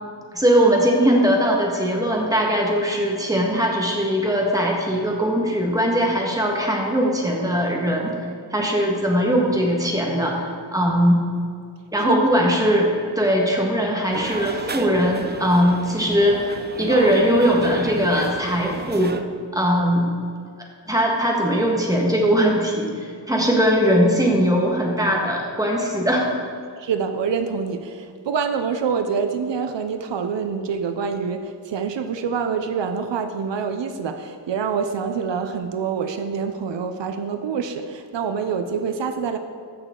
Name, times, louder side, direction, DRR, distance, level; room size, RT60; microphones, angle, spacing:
voice 1, 0.3-8.1 8.5-10.4 10.7-11.2 11.9-16.4 16.8-19.2 19.5-20.1 20.9-26.3, equal, 10° right, -1 dB, 1.6 m, -20 dB
sound 1, 14.1-19.2, right 3 dB, 25° right, 0.5 m, -32 dB
voice 2, 26.8-39.4, right 6 dB, 85° right, 7 dB, 0.7 m, -26 dB
14.5 x 6.3 x 3.8 m, 2.3 s
wide cardioid pair, 115°, 43 cm